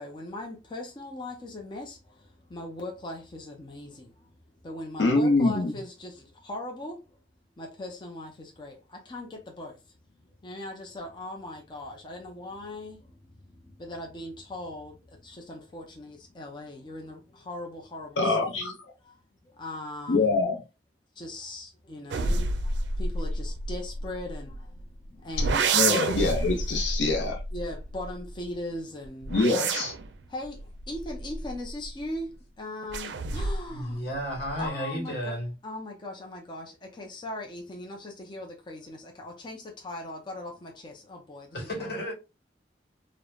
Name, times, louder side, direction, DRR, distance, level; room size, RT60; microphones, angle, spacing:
voice 1, 0.0-4.3 4.6-7.1 7.6-10.0 10.2-18.8 19.0-20.4 21.2-26.0 27.5-29.6 30.3-34.0 34.6-35.4 35.6-42.0, left 1 dB, 25° left, 0.5 m, -40 dB
voice 2, 5.0-5.7 18.2-18.7 20.1-20.6 25.7-27.4 29.3-29.9, left 3 dB, 90° left, 0.5 m, -24 dB
sound 1, 22.1-24.8 25.3-28.5 29.0-32.1 32.9-33.8 34.1-34.7, right 3 dB, 80° right, 0.4 m, -30 dB
voice 3, 33.7-35.5 41.5-42.1, equal, 65° left, 1.0 m, -33 dB
3.1 x 2.0 x 2.3 m
head